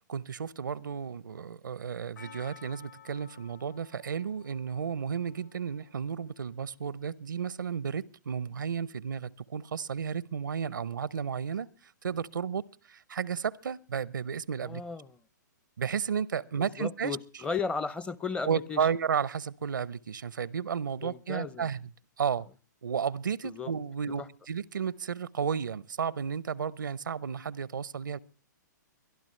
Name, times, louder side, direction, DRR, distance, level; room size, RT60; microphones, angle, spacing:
voice 1, 0.1-14.8 15.8-17.2 18.5-21.9 22.2-22.5 22.8-28.2, right 7 dB, 85° right, 0.6 m, -33 dB
Percussion, 2.2-6.5 6.8-6.9, left 9 dB, 75° left, 1.7 m, -55 dB
voice 2, 14.6-15.2 16.6-18.9 21.0-21.7 23.4-23.7 24.2-24.3, left 5 dB, 10° left, 0.6 m, -35 dB
23.0 x 12.0 x 3.2 m
hypercardioid pair, 130°, 10 cm